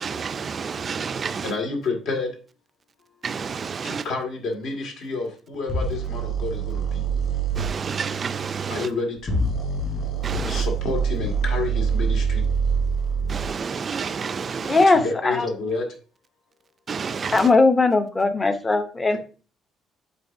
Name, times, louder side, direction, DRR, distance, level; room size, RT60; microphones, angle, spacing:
voice 1, 0.0-1.5 3.2-4.1 7.6-8.9 10.2-10.6 13.3-14.9 16.9-17.5, right 6 dB, 25° right, 0.4 m, -29 dB
voice 2, 1.4-2.3 3.8-7.1 8.7-9.4 10.1-10.2 10.5-12.5 14.9-15.9, left 3 dB, 65° left, 1.9 m, -29 dB
sound 1, 5.7-7.7 9.2-13.5, right 5 dB, 35° left, 3.4 m, -25 dB
voice 3, 14.6-15.4 17.3-19.2, left 3 dB, 15° left, 0.7 m, -19 dB
11.0 x 4.3 x 2.6 m
cardioid pair, 170°, 0 cm